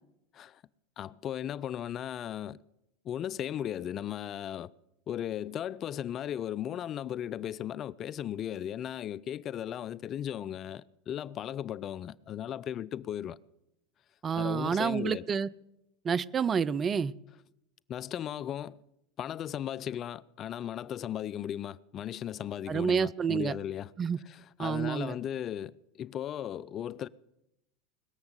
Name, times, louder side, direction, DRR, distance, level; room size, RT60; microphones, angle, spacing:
voice 1, 1.0-2.6 3.0-4.7 5.1-13.4 14.3-15.3 17.9-18.8 19.2-23.9 24.3-27.1, left 10 dB, 40° left, 0.5 m, -36 dB
voice 2, 14.2-15.5 16.0-17.1 22.7-23.5 24.0-24.2 24.6-25.1, right 6 dB, 30° right, 0.5 m, -29 dB
20.5 x 7.1 x 8.1 m
hypercardioid pair, 85°, 0 cm